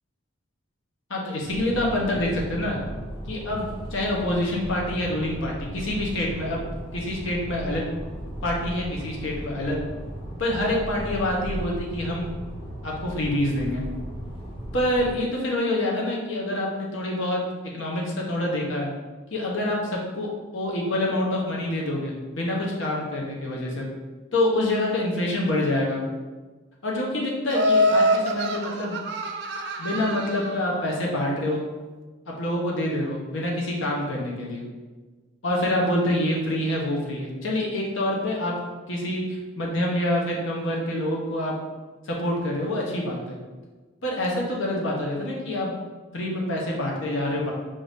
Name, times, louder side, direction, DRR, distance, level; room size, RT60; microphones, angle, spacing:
voice 1, 1.1-2.8 3.3-6.6 6.9-7.9 8.4-9.8 10.4-12.3 12.8-13.8 14.7-17.4 17.7-18.9 19.3-23.9 24.3-26.0 26.8-29.0 29.8-31.6 32.4-34.6 35.4-38.5 38.9-41.5 42.1-43.4 44.0-45.7 46.1-47.5, left 1 dB, 75° left, -2 dB, 1.0 m, -26 dB
sound 1, 1.4-15.1, equal, 25° left, 0.7 m, -36 dB
Laughter, 27.5-30.7, equal, 55° right, 0.4 m, -24 dB
5.5 x 2.7 x 3.5 m, 1.3 s
head